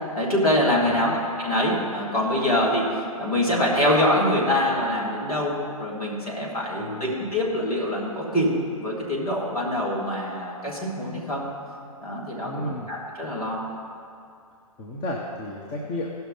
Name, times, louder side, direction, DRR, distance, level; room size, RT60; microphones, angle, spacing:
voice 1, 0.2-1.1 1.4-8.5 8.8-11.4 12.0-13.6, left 1 dB, 75° left, -4 dB, 2.9 m, -24 dB
voice 2, 0.9-1.2 6.8-7.1 12.4-12.9 14.8-16.1, left 1 dB, 25° left, -1 dB, 1.1 m, -33 dB
16.0 x 5.8 x 5.7 m, 2.5 s
figure-of-eight pair, 115°, 19 cm